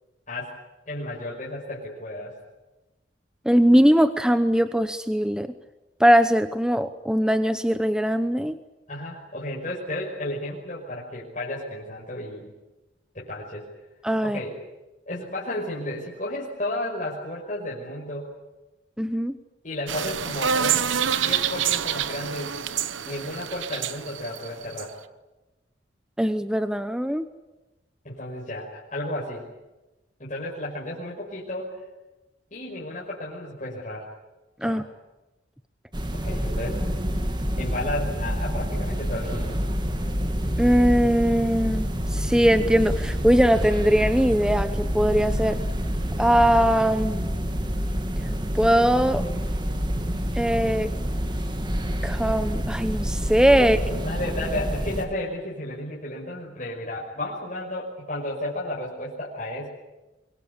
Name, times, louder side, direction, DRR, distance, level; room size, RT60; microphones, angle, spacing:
voice 1, 0.3-0.6 0.9-2.3 8.9-12.5 13.1-13.7 14.2-14.6 15.1-18.3 19.6-20.9 21.2-22.5 23.1-25.0 28.0-29.4 30.2-31.8 32.5-34.1 34.6-34.9 36.1-36.8 37.6-39.6 53.6-59.7, left 1 dB, 40° left, -5 dB, 5.6 m, -33 dB
voice 2, 3.5-5.5 6.0-8.5 14.0-14.4 19.0-19.4 26.2-27.2 34.6-34.8 40.6-45.6 46.2-47.2 48.5-49.3 50.4-50.9 52.0-53.8, equal, 5° right, 10 dB, 0.8 m, -21 dB
sound 1, 19.9-24.8, right 8 dB, 90° right, 1.0 m, -27 dB
sound 2, 35.9-55.0, equal, 25° right, 2.0 m, -27 dB
25.5 x 23.0 x 8.5 m, 1.0 s
head